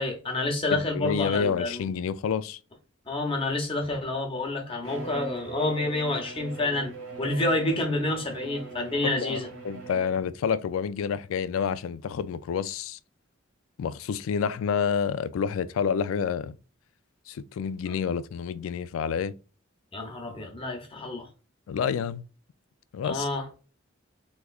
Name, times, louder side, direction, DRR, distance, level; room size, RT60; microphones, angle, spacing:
voice 1, 0.0-1.9 3.1-9.5 19.9-21.3 23.0-23.5, left 2 dB, 25° left, 0.9 m, -28 dB
voice 2, 0.7-2.6 9.0-13.0 13.8-16.6 17.3-19.3 21.7-22.2 22.9-23.3, left 6 dB, 90° left, 0.3 m, -29 dB
Bowed string instrument, 4.8-10.5, right 3 dB, 75° right, 1.4 m, -41 dB
3.5 x 3.0 x 2.3 m
head